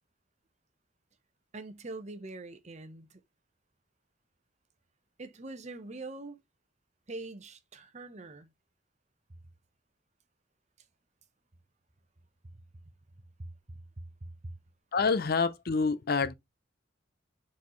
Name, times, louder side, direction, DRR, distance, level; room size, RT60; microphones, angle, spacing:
voice 1, 1.5-3.2 5.2-6.4 7.1-8.5 12.5-12.6 13.4-14.6, right 2 dB, 35° right, 0.9 m, -43 dB
voice 2, 14.9-16.3, left 4 dB, 55° left, 0.6 m, -27 dB
7.2 x 4.2 x 3.1 m
head